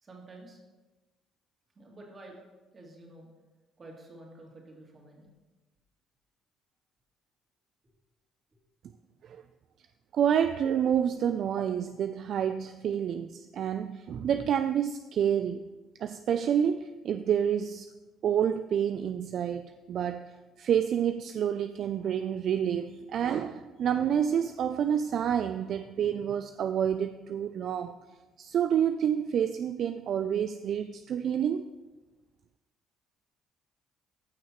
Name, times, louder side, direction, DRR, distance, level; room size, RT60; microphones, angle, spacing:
voice 1, 0.0-0.6 1.7-2.4 2.7-3.3 3.8-5.3, right 2 dB, 30° right, -1 dB, 2.5 m, -49 dB
voice 2, 10.1-15.6 16.0-17.9 18.2-20.3 20.6-27.9 28.4-31.7, right 8 dB, 55° right, 9 dB, 0.3 m, -28 dB
14.5 x 6.0 x 3.1 m, 1.2 s
cardioid pair, 100°, 0 cm